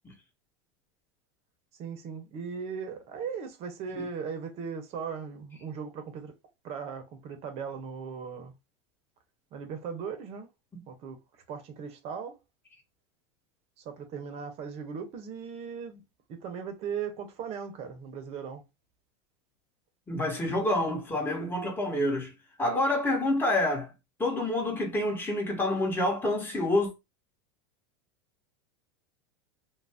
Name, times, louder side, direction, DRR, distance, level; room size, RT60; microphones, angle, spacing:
voice 1, 1.7-6.3 6.6-8.5 9.5-10.5 10.9-11.2 11.5-12.4 13.8-16.0 16.3-18.6, right 6 dB, 45° right, 0.8 m, -38 dB
voice 2, 20.1-22.3 22.6-23.9 24.2-26.9, left 1 dB, 15° left, 1.2 m, -28 dB
2.5 x 2.1 x 3.4 m
supercardioid pair, 110°, 15 cm